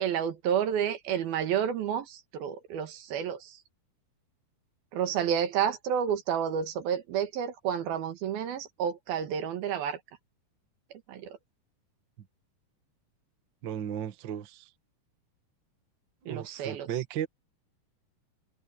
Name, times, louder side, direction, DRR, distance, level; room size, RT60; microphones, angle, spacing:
voice 1, 0.0-3.6 4.9-10.0 11.1-11.4 16.3-16.9, right 8 dB, 85° right, 3.6 m, -30 dB
voice 2, 13.6-14.7 16.3-17.3, right 10 dB, 60° right, 1.2 m, -35 dB
omnidirectional pair, 4.2 m